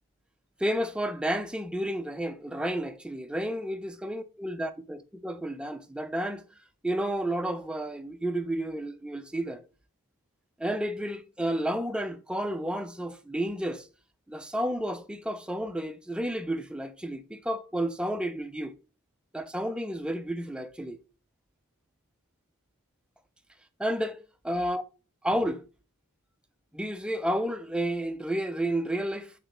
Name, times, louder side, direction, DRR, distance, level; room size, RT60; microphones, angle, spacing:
voice 1, 0.6-6.4 6.8-9.6 10.6-13.9 14.3-18.7 19.3-21.0 23.8-24.2 24.4-24.8 25.2-25.6 26.7-29.3, right 1 dB, 5° right, 0.3 m, -31 dB
3.9 x 3.4 x 3.7 m
head